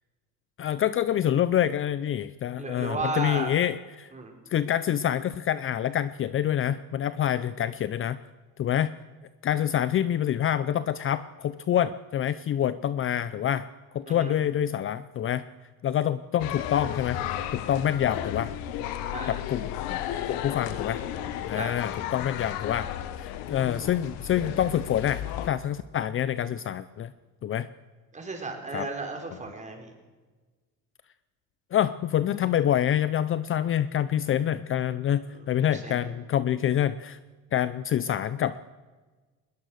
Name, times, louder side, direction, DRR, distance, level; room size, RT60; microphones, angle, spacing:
voice 1, 0.6-4.1 4.5-8.2 8.6-8.9 9.4-13.7 13.9-15.5 15.8-17.2 17.5-18.5 19.3-20.0 20.3-21.0 21.5-22.9 23.2-27.1 27.4-27.7 28.7-28.9 31.7-37.2 37.5-38.6, left 10 dB, 35° left, 15 dB, 0.6 m, -26 dB
voice 2, 2.6-3.5 4.1-4.3 14.1-14.3 19.1-19.4 21.5-21.8 28.1-29.9 35.3-36.1, right 3 dB, 20° right, 2 dB, 5.0 m, -34 dB
sound 1, 16.4-25.5, left 11 dB, 80° left, 1.6 m, -34 dB
21.0 x 21.0 x 6.5 m, 1.3 s
cardioid pair, 120°, 35 cm